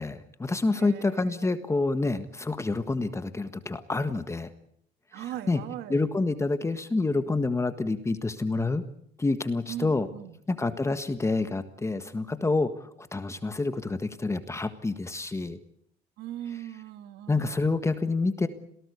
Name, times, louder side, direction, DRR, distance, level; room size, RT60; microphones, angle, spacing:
voice 1, 0.0-4.5 5.1-5.6 5.9-8.8 9.2-10.1 10.5-15.6 17.3-18.5, left 3 dB, 15° left, 10 dB, 1.6 m, -28 dB
voice 2, 0.8-1.5 5.1-6.1 9.7-10.4 16.2-17.7, right 12 dB, 80° right, 11 dB, 2.0 m, -39 dB
27.0 x 18.5 x 8.3 m, 0.70 s
cardioid pair, 110°, 17 cm